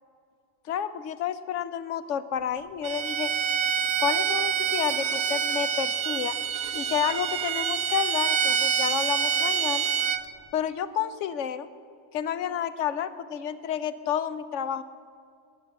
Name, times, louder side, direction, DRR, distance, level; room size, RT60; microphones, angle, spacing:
voice 1, 0.7-3.3 4.0-6.4 6.7-9.9 10.5-11.7 12.1-14.8, left 9 dB, 90° left, 13 dB, 1.0 m, -30 dB
Bowed string instrument, 2.8-10.2, right 8 dB, 65° right, 0.9 m, -27 dB
12.0 x 8.9 x 8.0 m, 2.3 s
omnidirectional pair, 1.2 m